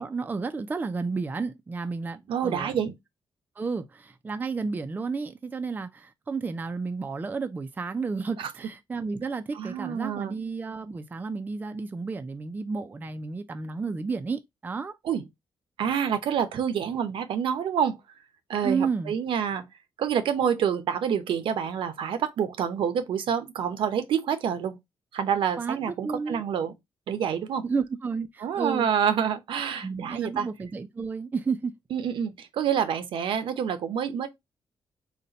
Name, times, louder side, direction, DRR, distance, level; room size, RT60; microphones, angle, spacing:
voice 1, 0.0-2.8 3.6-14.9 18.6-19.1 25.6-26.4 27.6-28.9 29.8-31.7, right 4 dB, 20° right, 0.4 m, -32 dB
voice 2, 2.3-2.9 8.4-8.5 9.5-10.4 15.0-15.2 15.8-18.0 18.5-19.6 20.0-24.8 25.1-26.7 27.1-27.6 28.4-30.5 31.9-34.3, right 8 dB, 75° right, 0.7 m, -27 dB
4.1 x 2.2 x 3.8 m
cardioid pair, 125°, 9 cm